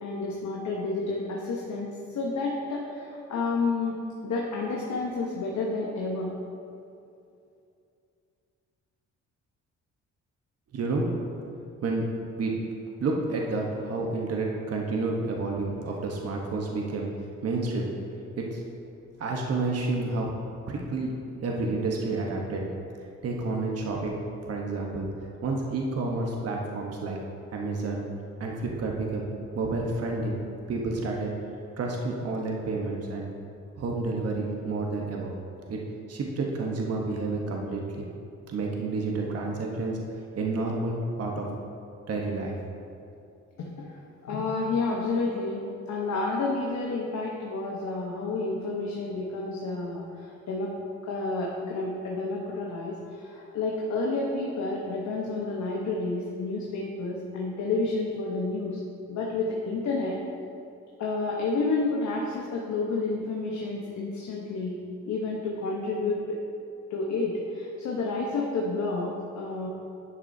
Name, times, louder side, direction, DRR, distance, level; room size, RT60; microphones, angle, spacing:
voice 1, 0.0-1.9 2.1-4.0 4.2-6.3 43.6-43.9 44.2-50.7 51.1-58.8 59.1-60.2 61.0-64.8 65.1-66.4 66.9-69.7, left 3 dB, 65° left, -2 dB, 1.0 m, -30 dB
voice 2, 10.7-11.1 11.8-12.1 12.4-12.5 13.0-17.1 17.4-17.9 18.4-18.6 19.2-20.3 20.7-21.1 21.4-22.6 23.2-24.2 24.5-25.1 25.4-27.2 27.5-28.0 28.4-29.3 29.5-30.4 30.7-31.3 31.8-33.3 33.8-35.3 35.7-35.8 36.1-38.1 38.5-40.0 40.4-41.6 42.1-42.6, right 3 dB, 55° right, -1 dB, 1.1 m, -30 dB
11.0 x 6.2 x 2.7 m, 2.6 s
cardioid pair, 90°, 30 cm